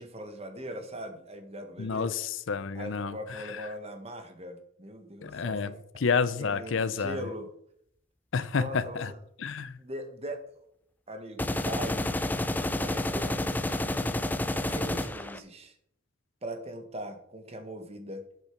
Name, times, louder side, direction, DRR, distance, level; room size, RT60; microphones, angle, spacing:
voice 1, 0.0-2.1 2.7-5.8 6.4-7.5 8.5-9.2 9.8-10.4 11.1-12.1 12.5-13.9 14.5-15.8 16.4-18.2, right 1 dB, 30° right, 7 dB, 1.3 m, -40 dB
voice 2, 1.8-3.7 5.2-7.2 8.3-9.1 9.4-9.8, left 5 dB, 70° left, 15 dB, 0.6 m, -30 dB
sound 1, 11.4-15.4, left 1 dB, 10° left, 0.4 m, -29 dB
8.3 x 6.8 x 5.9 m, 0.71 s
head